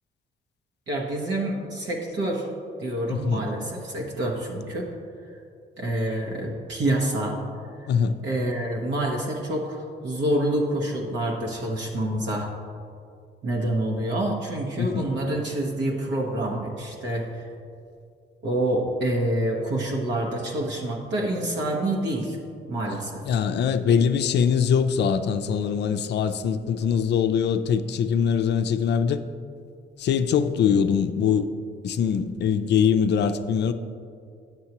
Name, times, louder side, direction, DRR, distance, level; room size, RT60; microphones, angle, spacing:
voice 1, 0.9-2.5 2.8-4.9 5.8-7.4 7.8-7.9 8.2-12.5 13.4-17.5 18.4-22.4 22.7-23.2, right 1 dB, 65° right, -2 dB, 1.1 m, -27 dB
voice 2, 3.1-3.4 7.9-8.2 14.8-15.1 23.2-29.2 30.0-31.5 31.8-33.7, left 7 dB, 60° left, 10 dB, 0.5 m, -22 dB
9.4 x 7.4 x 2.9 m, 2.4 s
cardioid pair, 90°, 20 cm